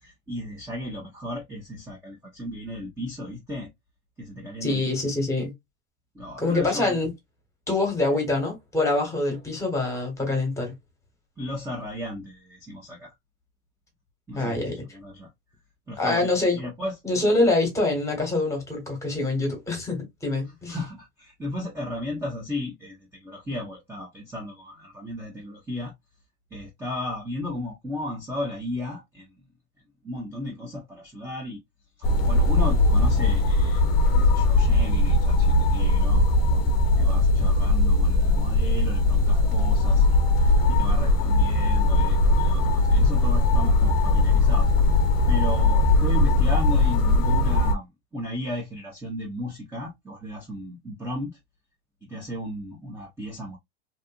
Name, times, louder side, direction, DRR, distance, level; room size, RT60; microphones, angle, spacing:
voice 1, 0.0-3.7 4.2-5.1 5.4-5.5 6.1-7.0 8.1-8.2 9.3-9.4 11.4-13.1 14.3-14.6 14.9-15.3 15.9-16.9 20.7-25.9 26.5-29.3 30.0-31.6 32.2-33.8 34.2-36.2 36.5-44.7 45.3-51.4 52.1-53.6, left 1 dB, 10° right, 0.7 m, -35 dB
voice 2, 4.6-5.5 6.4-7.1 7.7-10.7 14.3-14.8 16.0-16.6 17.0-20.8, left 2 dB, 10° left, 1.3 m, -25 dB
sound 1, 32.0-47.7, left 2 dB, 40° left, 0.7 m, -20 dB
2.8 x 2.4 x 2.4 m
supercardioid pair, 135°, 34 cm